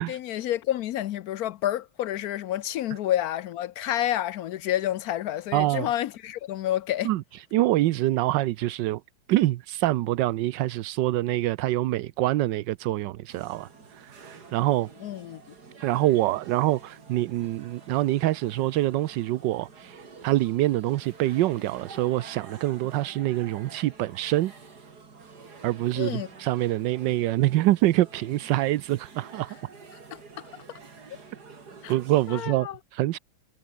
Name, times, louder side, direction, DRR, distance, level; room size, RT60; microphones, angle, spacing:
voice 1, 0.0-7.1 15.0-15.4 26.0-26.3 30.1-30.5 31.8-31.9 32.3-32.8, left 12 dB, 70° left, 0.9 m, -29 dB
voice 2, 5.5-5.9 7.0-9.0 9.3-14.9 15.8-24.5 25.6-29.6 31.9-33.2, right 15 dB, 75° right, 1.2 m, -25 dB
sound 1, 13.3-32.4, right 4 dB, 55° right, 3.3 m, -48 dB
omnidirectional pair, 2.1 m